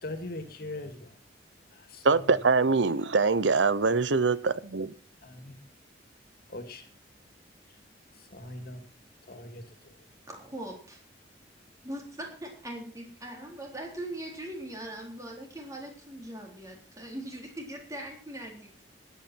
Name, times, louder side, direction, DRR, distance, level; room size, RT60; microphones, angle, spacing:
voice 1, 0.0-1.2 1.7-2.4 2.6-2.7 5.2-5.6 6.5-6.9 7.7-7.8 8.1-8.8 9.2-10.1, left 2 dB, 55° left, 2.4 m, -42 dB
voice 2, 2.0-4.9, right 4 dB, 80° right, 0.8 m, -24 dB
voice 3, 10.3-11.0 11.8-18.9, right 1 dB, 20° right, 3.8 m, -41 dB
20.5 x 8.9 x 4.5 m
head